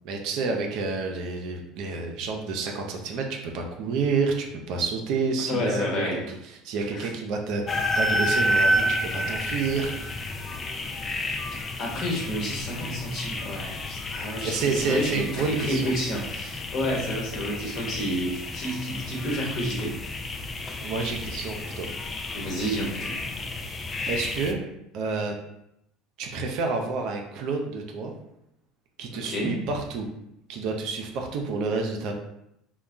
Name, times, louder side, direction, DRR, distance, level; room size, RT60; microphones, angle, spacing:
voice 1, 0.0-10.2 14.4-15.9 20.8-21.9 24.1-24.6 24.9-25.3 26.2-28.1 29.0-30.1 30.5-32.1, right 4 dB, 60° right, 2 dB, 0.5 m, -29 dB
voice 2, 5.5-6.2 6.9-7.1 11.8-19.9 22.3-23.2 29.1-29.6, equal, 50° left, -3 dB, 1.1 m, -30 dB
sound 1, 7.7-24.5, left 1 dB, 30° left, 0.3 m, -30 dB
2.2 x 2.2 x 3.7 m, 0.80 s
hypercardioid pair, 75°, 0 cm